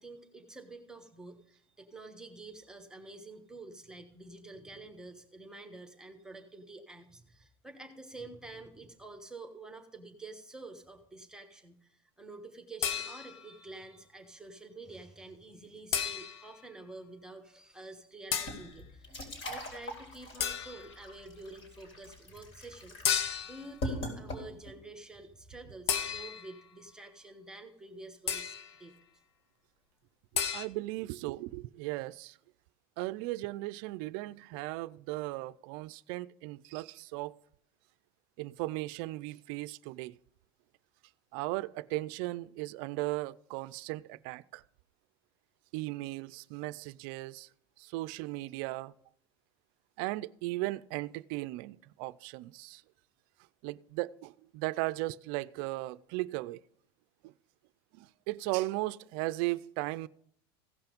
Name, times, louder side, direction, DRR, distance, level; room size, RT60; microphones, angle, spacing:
voice 1, 0.0-29.0, right 2 dB, 5° right, 1.2 m, -49 dB
sound 1, 12.8-13.5 15.9-16.6 18.3-18.7 20.4-21.0 23.0-23.7 25.9-26.6 28.3-28.7 30.3-30.7, left 8 dB, 90° left, 0.9 m, -33 dB
sound 2, 18.4-24.8, left 1 dB, 50° left, 4.0 m, -41 dB
voice 2, 30.5-32.4 33.0-37.4 38.4-40.2 41.3-44.6 45.7-47.5 47.8-48.9 50.0-52.8 53.6-56.6 57.2-57.3 57.9-60.1, right 19 dB, 60° right, 0.4 m, -37 dB
16.0 x 5.8 x 5.2 m
supercardioid pair, 125°, 13 cm